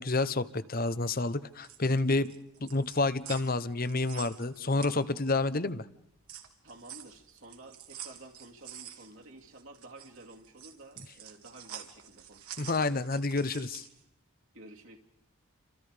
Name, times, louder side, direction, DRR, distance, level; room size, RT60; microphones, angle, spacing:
voice 1, 0.0-2.3 2.6-5.9 12.6-13.9, left 3 dB, 40° left, 15 dB, 0.9 m, -29 dB
sound 1, 1.4-5.5 5.9-14.0, right 10 dB, 85° right, 3.1 m, -47 dB
voice 2, 6.6-13.0 14.5-15.0, right 2 dB, 60° right, 1 dB, 2.6 m, -52 dB
29.5 x 26.5 x 5.1 m, 0.77 s
head